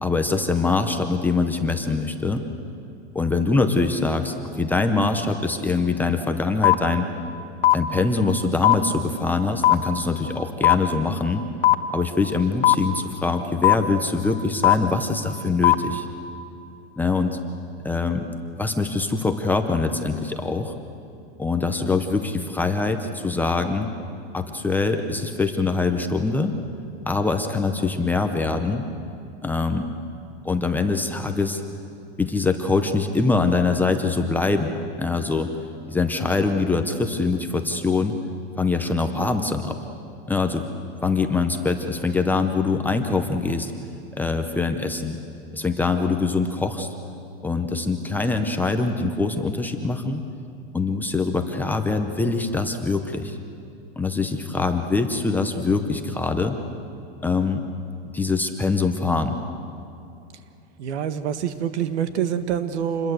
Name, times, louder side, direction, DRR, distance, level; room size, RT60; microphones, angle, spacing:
voice 1, 0.0-2.4 3.1-7.1 7.7-11.4 11.9-16.1 17.0-17.4 17.8-18.3 18.6-20.7 21.4-23.9 24.3-26.5 27.1-28.8 29.4-29.9 30.4-31.6 32.2-34.7 35.0-35.5 35.9-38.2 38.6-39.8 40.3-40.6 41.0-43.7 44.2-45.2 45.5-46.9 47.4-50.2 50.7-53.4 54.0-56.6 57.2-57.6 58.1-59.3, left 3 dB, 5° left, 5 dB, 0.7 m, -23 dB
sound 1, 6.6-6.7 7.6-7.7 8.6-8.7 9.6-9.7 10.6-10.7 11.6-11.7 12.6-12.7 13.6-13.7 14.6-14.7 15.6-15.7, left 14 dB, 55° left, 1.5 m, -14 dB
voice 2, 60.8-63.1, right 8 dB, 75° right, 10 dB, 1.8 m, -26 dB
27.5 x 21.5 x 8.0 m, 2.7 s
supercardioid pair, 170°, 34 cm